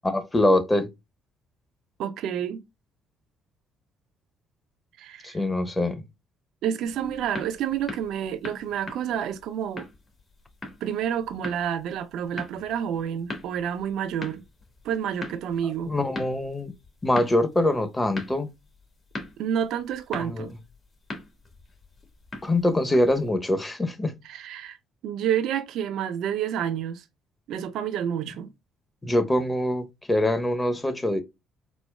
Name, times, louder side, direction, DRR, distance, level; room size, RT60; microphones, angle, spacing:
voice 1, 0.0-0.9 5.2-6.0 15.6-16.7 17.0-18.5 20.2-20.5 22.4-24.2 29.0-31.2, left 1 dB, 20° left, 1.0 m, -24 dB
voice 2, 2.0-2.6 5.0-5.4 6.6-9.9 10.8-14.4 14.8-15.9 19.4-20.5 24.2-24.8 25.0-27.0 27.5-28.5, right 9 dB, 70° right, 0.4 m, -29 dB
sound 1, 6.8-23.3, left 2 dB, 40° left, 1.4 m, -42 dB
4.2 x 2.2 x 2.2 m
hypercardioid pair, 55°, 0 cm